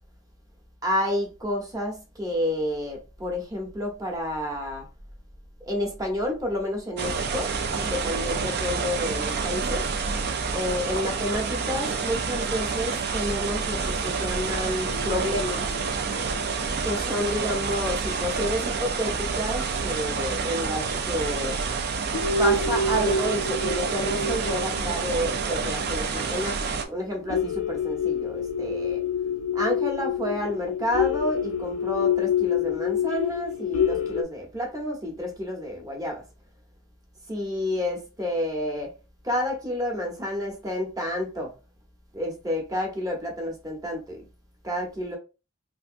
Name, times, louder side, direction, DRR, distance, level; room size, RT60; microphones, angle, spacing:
voice 1, 0.8-4.8 5.6-9.9 10.5-15.7 16.8-21.6 22.4-29.0 29.5-36.2 37.3-38.9 39.2-41.5 42.1-44.3 44.6-45.2, left 1 dB, 15° right, 0.9 m, -30 dB
sound 1, 7.0-26.8, right 5 dB, 50° right, 0.4 m, -28 dB
sound 2, 14.9-18.8 19.3-19.4 20.5-20.6 21.1-21.2 21.6-21.8 22.1-34.2, left 5 dB, 70° left, 0.4 m, -28 dB
3.4 x 2.6 x 2.6 m
head